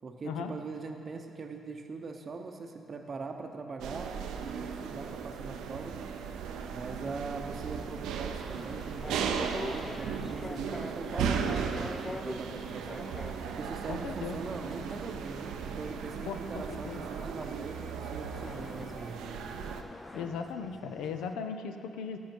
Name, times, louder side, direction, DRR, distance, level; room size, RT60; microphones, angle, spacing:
voice 1, 0.0-6.0 6.7-13.1 13.6-19.4, right 4 dB, 45° right, 4 dB, 0.7 m, -41 dB
sound 1, 3.8-19.8, right 6 dB, 90° right, 0.6 m, -36 dB
sound 2, 7.7-21.3, left 2 dB, 20° left, 0.4 m, -45 dB
voice 2, 13.9-14.4 16.3-17.0 20.1-22.2, left 6 dB, 90° left, 7 dB, 0.6 m, -37 dB
15.0 x 5.5 x 4.5 m, 2.6 s
cardioid pair, 90°, 0 cm